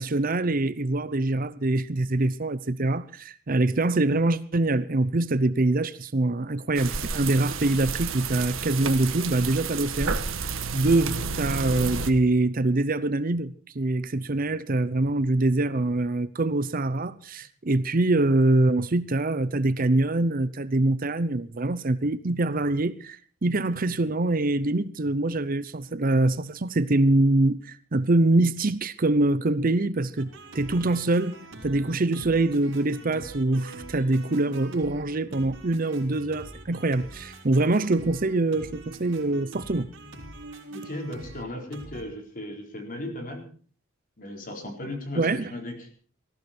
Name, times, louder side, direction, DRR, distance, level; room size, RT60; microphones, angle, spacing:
voice 1, 0.0-30.3 30.5-31.4 31.6-39.9 45.2-45.5, right 2 dB, 45° right, 0.7 m, -24 dB
sound 1, 6.7-12.1, right 5 dB, 80° right, 1.6 m, -31 dB
sound 2, 30.2-42.0, right 2 dB, 65° right, 4.8 m, -44 dB
voice 2, 40.7-43.4 44.2-45.9, left 1 dB, 40° left, 4.3 m, -36 dB
19.0 x 15.0 x 4.4 m
head